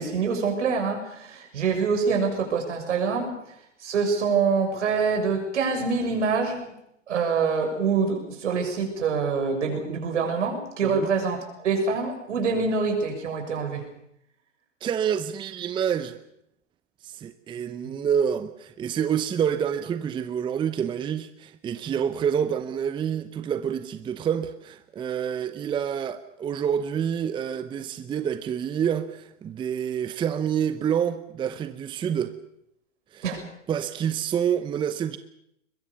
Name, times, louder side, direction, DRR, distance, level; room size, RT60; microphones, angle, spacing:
voice 1, 0.0-3.4 3.8-6.7 7.1-13.8 17.8-17.9 33.2-33.4, right 5 dB, 70° right, 6.8 m, -25 dB
voice 2, 14.8-16.2 17.0-32.3 33.1-33.2 33.7-35.2, right 8 dB, 15° right, 0.8 m, -27 dB
22.5 x 21.5 x 7.0 m
hypercardioid pair, 125°, 37 cm